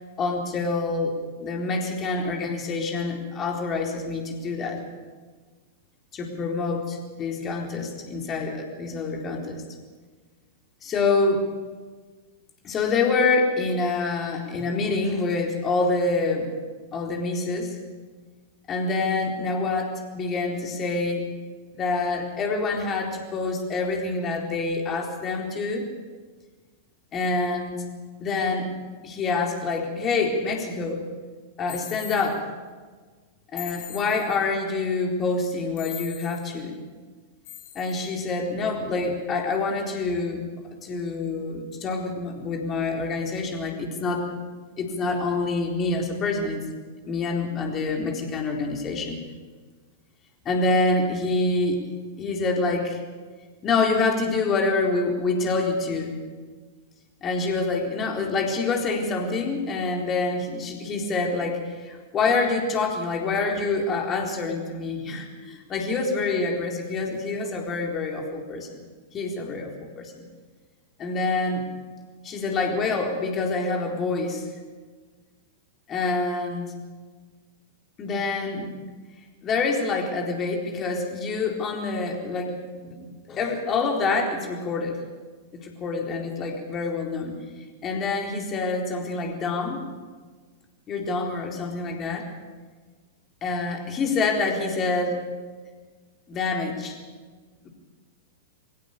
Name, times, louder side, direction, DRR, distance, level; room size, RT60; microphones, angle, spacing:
voice 1, 0.2-4.8 6.1-9.6 10.8-11.5 12.6-16.5 16.9-17.8 18.7-21.3 21.7-25.9 27.1-27.8 28.2-28.7 29.0-31.0 31.6-32.4 33.5-36.8 37.7-40.5 40.8-44.3 44.8-46.6 47.0-49.2 50.4-51.8 52.2-53.0 53.6-56.1 57.2-68.7 69.1-70.2 71.0-71.7 72.2-74.4 75.9-76.7 78.0-78.8 79.4-82.6 82.8-85.0 85.5-87.4 87.8-89.8 90.9-92.3 93.4-95.3 96.3-97.0, left 3 dB, 25° left, 1 dB, 4.1 m, -26 dB
sound 1, 31.7-32.4 33.6-34.4 35.8-36.5 37.4-38.1, left 12 dB, 50° left, 4.6 m, -41 dB
24.5 x 16.0 x 7.0 m, 1.4 s
figure-of-eight pair, 95°, 0 cm